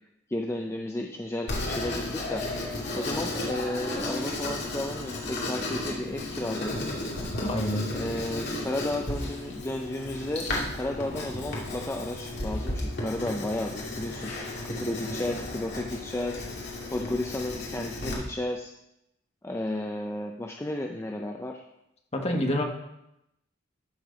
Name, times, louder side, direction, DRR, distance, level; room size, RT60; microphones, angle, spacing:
voice 1, 0.3-6.9 7.9-10.5 10.7-18.7 19.4-21.6, left 1 dB, 15° left, 2 dB, 0.5 m, -33 dB
Writing, 1.5-18.1, left 2 dB, 55° left, 2.4 m, -34 dB
voice 2, 7.4-7.9 22.1-22.6, left 1 dB, 30° left, 2 dB, 1.4 m, -27 dB
13.0 x 4.6 x 5.1 m, 0.84 s
head